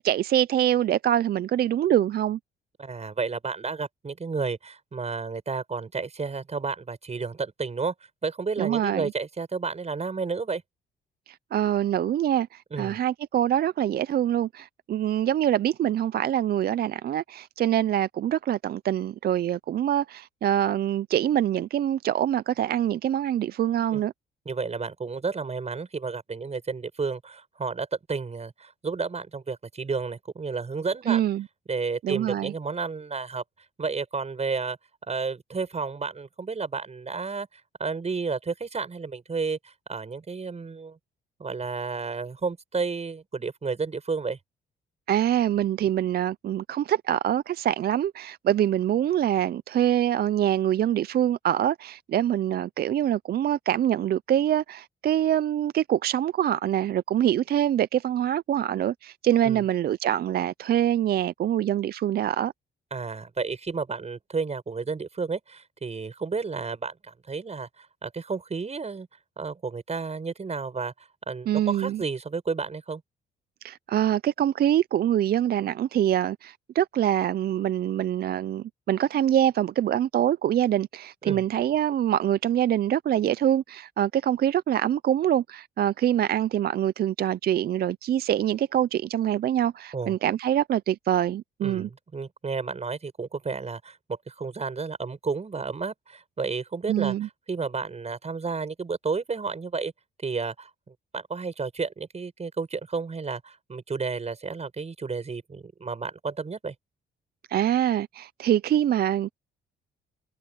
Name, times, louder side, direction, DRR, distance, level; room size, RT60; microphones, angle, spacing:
voice 1, 0.0-2.4 8.6-9.1 11.3-24.1 31.1-31.5 32.0-32.5 45.1-62.5 71.5-72.0 73.6-91.9 96.9-97.3 107.5-109.3, right 11 dB, 50° right, 0.5 m, -25 dB
voice 2, 2.8-7.9 8.2-10.6 12.7-13.0 23.9-24.0 24.5-31.2 31.7-33.4 33.8-34.8 35.1-41.0 41.4-44.4 59.4-59.6 62.9-69.1 69.4-73.0 81.2-81.4 89.9-90.1 91.6-99.9 100.2-106.7, right 4 dB, 35° right, 7.5 m, -32 dB
cardioid pair, 90°, 20 cm